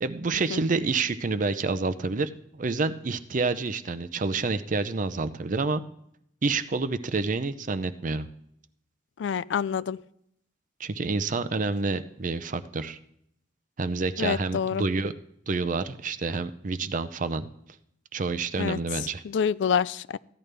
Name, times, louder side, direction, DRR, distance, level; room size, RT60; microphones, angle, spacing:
voice 1, 0.0-2.3 2.6-5.8 6.4-8.3 10.8-13.0 13.8-15.1 15.5-17.5 18.1-19.2, right 3 dB, 45° right, 11 dB, 0.6 m, -28 dB
voice 2, 9.2-10.0 14.2-14.8 18.6-18.8 19.2-20.2, left 7 dB, 75° left, 18 dB, 0.4 m, -27 dB
15.0 x 10.5 x 3.3 m, 0.73 s
head